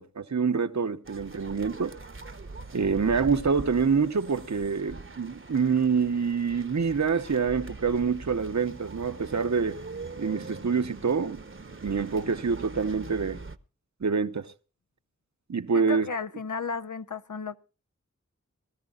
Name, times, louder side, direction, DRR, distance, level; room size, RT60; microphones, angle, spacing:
voice 1, 0.0-1.9 2.7-9.8 10.2-11.4 11.8-13.4 14.0-14.5 15.5-16.1, right 5 dB, 70° right, 0.9 m, -26 dB
sound 1, 1.0-13.6, right 3 dB, 45° right, 0.9 m, -43 dB
voice 2, 15.7-17.6, left 5 dB, 90° left, 0.9 m, -33 dB
23.0 x 14.0 x 2.4 m
wide cardioid pair, 50°, 30 cm